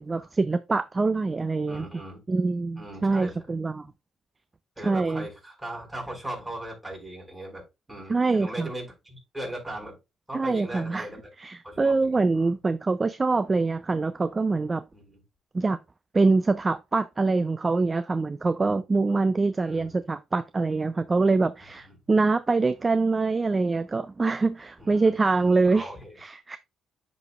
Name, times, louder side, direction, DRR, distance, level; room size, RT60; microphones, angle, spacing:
voice 1, 0.0-1.8 2.3-3.9 4.8-5.3 8.1-8.7 10.3-11.1 11.4-14.8 15.5-15.8 16.1-25.9 26.2-26.6, right 3 dB, 25° right, 0.3 m, -24 dB
voice 2, 1.7-2.2 2.8-3.4 4.8-7.6 7.9-10.0 10.3-11.2 11.6-12.5 14.9-15.2 19.6-19.9 21.6-21.9 24.8-26.2, right 1 dB, 10° right, 4.4 m, -39 dB
10.5 x 4.0 x 2.3 m
cardioid pair, 90°, 0 cm